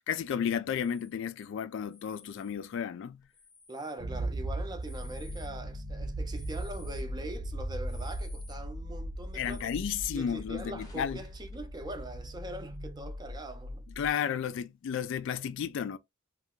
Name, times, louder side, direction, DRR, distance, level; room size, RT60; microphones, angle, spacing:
voice 1, 0.1-3.2 9.3-11.2 14.0-16.0, left 8 dB, 65° left, 0.3 m, -33 dB
sound 1, 0.8-1.1 1.9-2.6 3.2-4.0 4.7-5.5 6.3-7.1 7.8-8.6 9.3-10.0 10.5-11.7 12.2-12.3 12.5-12.9 13.5-13.8, left 3 dB, 20° left, 0.6 m, -56 dB
voice 2, 3.7-9.8 10.1-13.9, right 1 dB, 20° right, 0.5 m, -42 dB
sound 2, 4.0-14.1, right 1 dB, 60° right, 0.7 m, -38 dB
2.7 x 2.3 x 3.5 m
head